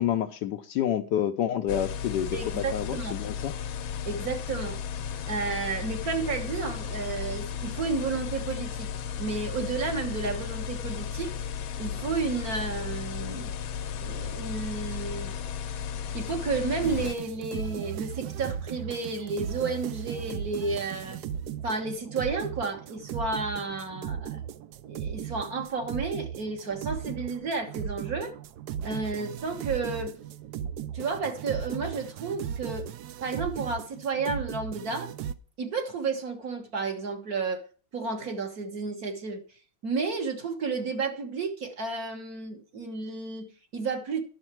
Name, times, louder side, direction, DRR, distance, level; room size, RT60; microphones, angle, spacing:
voice 1, 0.0-3.5, left 10 dB, 70° left, 1.1 m, -28 dB
sound 1, 1.7-17.1, left 8 dB, 90° left, 1.6 m, -35 dB
voice 2, 2.3-3.2 4.0-4.8 5.3-8.9 9.2-11.4 11.8-13.5 14.0-15.3 16.1-21.2 21.6-24.5 24.8-28.3 28.8-30.1 30.9-32.9 33.2-35.1 35.6-37.6 37.9-39.4 39.8-44.2, right 4 dB, 50° right, 1.8 m, -32 dB
sound 2, 16.8-35.3, right 9 dB, 75° right, 1.0 m, -37 dB
10.5 x 6.6 x 4.5 m
omnidirectional pair, 2.1 m